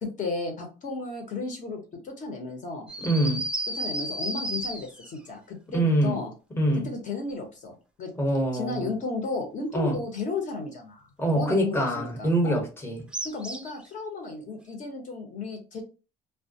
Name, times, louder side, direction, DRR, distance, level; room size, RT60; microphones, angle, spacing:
voice 1, 0.0-2.9 3.7-6.3 6.8-8.1 8.5-11.0 11.3-12.6 13.2-15.8, left 3 dB, 50° left, 1.0 m, -34 dB
sound 1, 2.9-5.2 13.1-13.8, right 1 dB, 5° right, 0.4 m, -32 dB
voice 2, 3.0-3.5 5.7-6.2 6.6-6.9 8.2-8.9 9.7-10.0 11.2-13.0, right 1 dB, 15° left, 0.9 m, -25 dB
2.2 x 2.1 x 2.7 m
cardioid pair, 110°, 17 cm